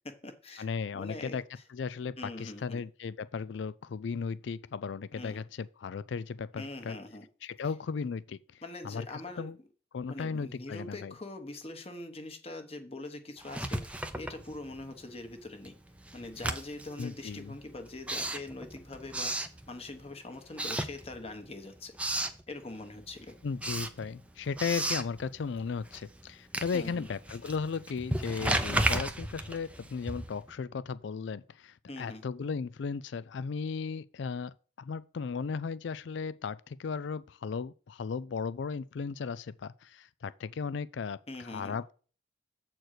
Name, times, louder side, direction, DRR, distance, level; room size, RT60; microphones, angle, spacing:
voice 1, 0.0-0.7 0.9-1.4 2.2-2.8 5.1-5.4 6.6-7.2 8.6-9.5 10.1-15.7 16.1-21.9 22.5-23.4 26.7-27.1 31.9-32.2 41.3-41.8, left 2 dB, 30° left, 1.2 m, -43 dB
voice 2, 0.6-1.4 1.7-7.0 7.4-9.0 9.4-9.6 9.9-11.1 17.0-17.5 23.4-41.2 41.4-41.9, left 5 dB, 65° left, 0.4 m, -36 dB
Writing, 13.4-15.0 15.3-20.1 20.5-21.5 21.8-22.4 22.9-30.5, right 1 dB, 5° right, 0.6 m, -35 dB
7.8 x 4.5 x 6.5 m
head